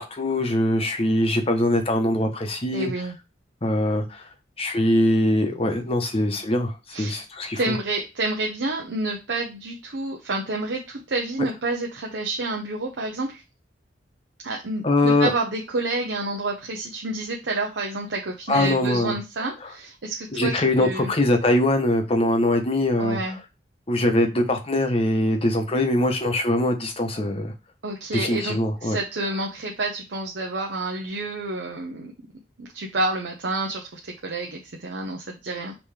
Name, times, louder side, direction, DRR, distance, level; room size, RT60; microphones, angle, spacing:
voice 1, 0.0-2.9 3.6-4.2 4.6-7.7 14.8-15.3 18.5-19.2 19.6-19.7 20.3-23.2 23.9-27.5 28.1-29.0, left 1 dB, 30° left, 5 dB, 0.8 m, -22 dB
voice 2, 2.7-3.2 6.9-7.2 7.5-13.4 14.4-21.1 23.0-23.4 27.8-32.1 32.6-35.8, right 2 dB, 75° right, 0 dB, 0.8 m, -29 dB
5.4 x 3.0 x 3.3 m, 0.27 s
head